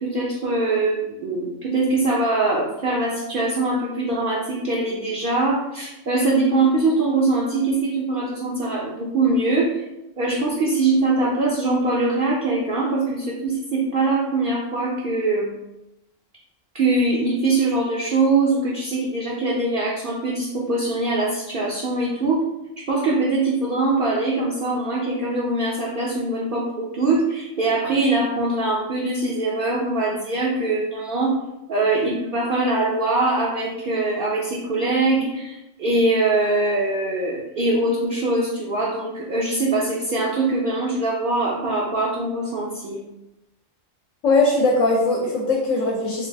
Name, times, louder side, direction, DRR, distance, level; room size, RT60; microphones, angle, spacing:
voice 1, 0.0-9.8 10.2-15.5 16.7-22.4 22.9-31.4 31.7-43.0, right 2 dB, 55° right, -5 dB, 0.7 m, -22 dB
voice 2, 44.2-46.3, left 2 dB, 75° left, -3 dB, 1.1 m, -20 dB
3.3 x 2.4 x 3.4 m, 0.92 s
omnidirectional pair, 1.4 m